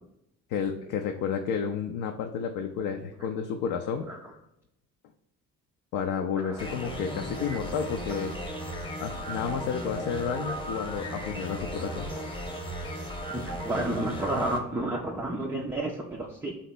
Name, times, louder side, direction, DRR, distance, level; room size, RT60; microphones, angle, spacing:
voice 1, 0.5-4.4 5.9-8.3 9.0-12.1, left 7 dB, 50° left, 4 dB, 0.5 m, -31 dB
sound 1, 6.6-14.6, equal, 10° left, 0.9 m, -36 dB
voice 2, 13.3-16.5, right 1 dB, 5° right, 0 dB, 0.3 m, -31 dB
4.0 x 2.9 x 4.2 m, 0.85 s
figure-of-eight pair, 45°, 45 cm